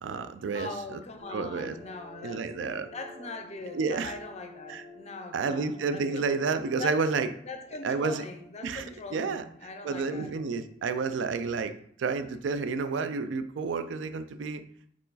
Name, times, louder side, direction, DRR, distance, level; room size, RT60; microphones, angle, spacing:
voice 1, 0.0-1.0 1.3-1.7 2.2-2.9 3.7-4.1 4.7-4.8 5.3-7.3 7.8-8.2 8.6-8.8 9.1-9.4 9.8-11.7 12.0-14.6, right 4 dB, 75° right, 10 dB, 0.4 m, -30 dB
voice 2, 0.5-2.4 2.9-6.3 6.8-7.0 7.4-10.3 11.1-11.2, left 3 dB, 35° left, 5 dB, 0.6 m, -41 dB
sound 1, 1.2-11.0, left 1 dB, 35° right, 1.1 m, -51 dB
4.5 x 3.0 x 3.9 m, 0.64 s
head